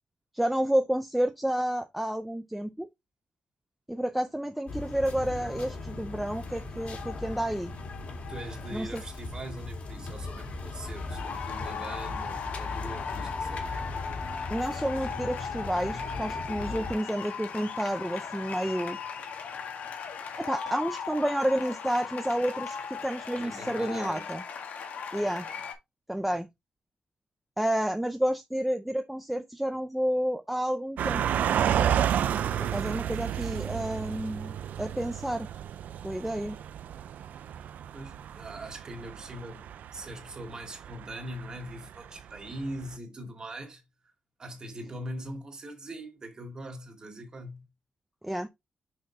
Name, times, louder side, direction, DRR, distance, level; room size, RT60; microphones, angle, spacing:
voice 1, 0.3-2.9 3.9-7.7 8.7-9.0 14.5-19.0 20.4-24.4 25.1-25.5 26.1-26.5 27.6-31.2 32.7-35.5 36.0-36.6 48.2-48.5, right 1 dB, 5° right, 0.5 m, -30 dB
sound 1, 4.7-16.9, left 3 dB, 55° left, 2.3 m, -38 dB
voice 2, 8.3-13.7 23.4-24.3 25.4-25.6 26.3-26.4 37.9-43.8 44.4-47.7, right 1 dB, 30° right, 2.1 m, -41 dB
sound 2, 10.7-25.7, left 6 dB, 80° left, 1.7 m, -37 dB
sound 3, 31.0-42.6 42.9-43.0, right 9 dB, 80° right, 0.5 m, -31 dB
6.4 x 5.7 x 2.8 m
wide cardioid pair, 180°, 3 cm